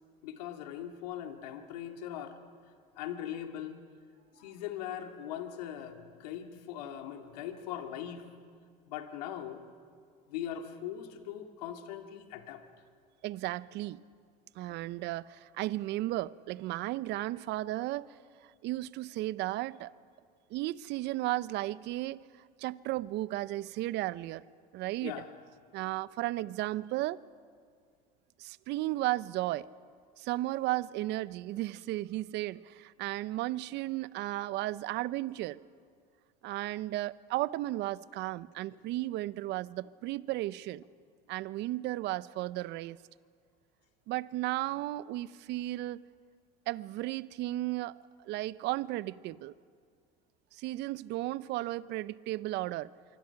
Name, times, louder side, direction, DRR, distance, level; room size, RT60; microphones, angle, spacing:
voice 1, 0.2-2.4 3.0-3.8 4.3-8.3 8.9-9.6 10.3-12.6 25.0-25.3, left 10 dB, 85° left, 2.3 m, -40 dB
voice 2, 13.2-14.0 14.6-18.1 18.4-19.9 20.5-22.2 22.6-24.4 24.7-25.1 25.7-27.2 28.4-29.7 30.2-35.6 36.4-40.8 41.3-43.0 44.1-46.0 46.7-49.5 50.6-52.9, right 17 dB, 60° right, 0.7 m, -34 dB
25.0 x 24.5 x 5.9 m
supercardioid pair, 90°, 20 cm